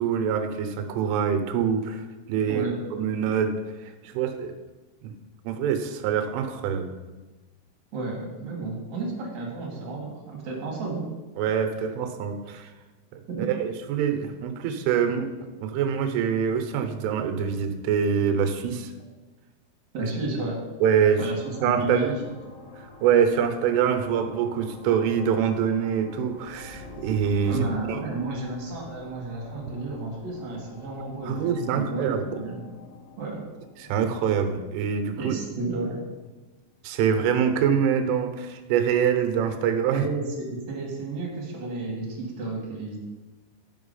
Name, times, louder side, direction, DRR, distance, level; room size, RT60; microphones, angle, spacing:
voice 1, 0.0-2.7 2.9-3.6 3.8-4.5 5.0-5.1 5.4-6.9 11.4-12.7 13.1-13.2 13.5-15.3 15.6-18.9 20.8-21.2 21.6-22.1 22.8-28.0 31.3-32.3 33.8-35.3 36.8-40.0, right 7 dB, 80° right, 6 dB, 3.4 m, -25 dB
voice 2, 2.5-2.9 7.9-11.1 13.3-13.5 19.9-20.6 21.2-22.2 27.5-32.7 33.2-33.4 35.2-36.0 39.9-43.0, right 3 dB, 50° right, -2 dB, 2.5 m, -32 dB
sound 1, 21.4-35.5, left 3 dB, 90° left, 4.3 m, -47 dB
11.0 x 6.0 x 5.6 m, 1.2 s
omnidirectional pair, 5.7 m